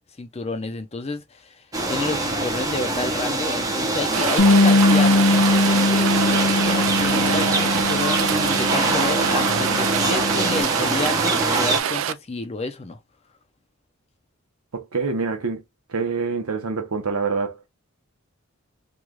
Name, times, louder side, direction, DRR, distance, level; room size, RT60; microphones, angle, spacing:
voice 1, 0.2-13.0, left 3 dB, 30° left, 0.5 m, -30 dB
sound 1, 1.7-11.8, right 2 dB, 15° right, 0.6 m, -24 dB
Rain, 4.1-12.1, right 9 dB, 60° right, 0.3 m, -25 dB
Bass guitar, 4.4-10.6, left 2 dB, 90° left, 0.5 m, -21 dB
voice 2, 14.7-15.6 15.9-17.6, right 4 dB, 85° right, 0.8 m, -26 dB
3.1 x 2.3 x 2.3 m
head